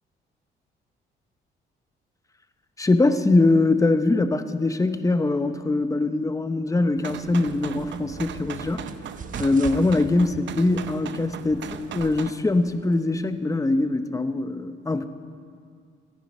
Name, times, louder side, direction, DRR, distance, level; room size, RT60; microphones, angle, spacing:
voice 1, 2.8-8.9 9.4-15.1, left 2 dB, 15° left, 10 dB, 0.8 m, -22 dB
sound 1, 7.0-12.3, right 9 dB, 70° right, 0.7 m, -38 dB
sound 2, 7.2-13.4, right 4 dB, 40° right, 1.1 m, -42 dB
24.0 x 10.0 x 5.5 m, 2.3 s
cardioid pair, 90°, 20 cm